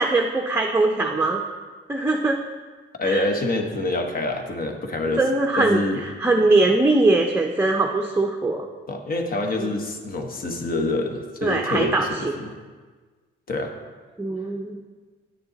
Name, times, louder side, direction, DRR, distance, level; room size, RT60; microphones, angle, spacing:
voice 1, 0.0-1.4 1.9-2.4 3.0-3.3 5.2-8.7 9.6-9.7 11.4-12.3 14.2-14.8, right 2 dB, 10° right, 1 dB, 0.6 m, -21 dB
voice 2, 3.0-5.2 5.5-6.0 8.9-12.5 13.5-13.7, left 2 dB, 45° left, 4 dB, 1.1 m, -26 dB
9.0 x 6.7 x 4.0 m, 1.4 s
cardioid pair, 90°, 20 cm